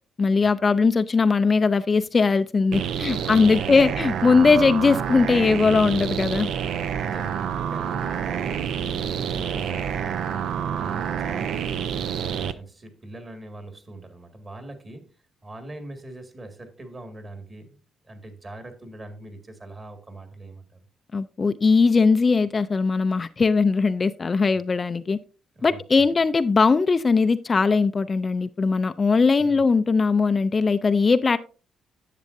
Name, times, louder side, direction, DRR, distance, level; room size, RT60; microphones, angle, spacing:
voice 1, 0.2-6.5 21.1-25.2 25.6-31.4, left 4 dB, 35° left, 11 dB, 0.4 m, -20 dB
sound 1, 2.7-12.5, right 8 dB, 75° right, 0.5 m, -28 dB
voice 2, 3.0-4.0 7.0-10.1 10.6-15.1 15.4-20.7 25.5-26.2 29.4-29.6, right 1 dB, 30° right, 7 dB, 1.9 m, -42 dB
10.5 x 7.5 x 2.6 m, 0.36 s
cardioid pair, 90°, 0 cm